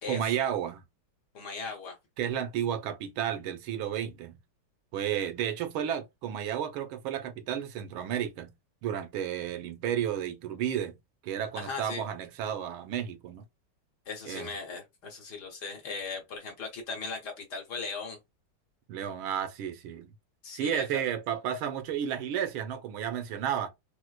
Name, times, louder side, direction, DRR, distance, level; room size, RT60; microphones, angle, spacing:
voice 1, 0.1-0.8 2.2-4.4 4.9-8.5 8.8-11.0 11.2-13.4 14.3-14.5 18.9-20.1 20.5-23.7, right 9 dB, 85° right, 1.5 m, -32 dB
voice 2, 1.3-2.0 11.5-12.0 14.1-18.2 20.4-21.0, left 4 dB, 60° left, 1.5 m, -38 dB
4.5 x 2.0 x 2.3 m
omnidirectional pair, 2.2 m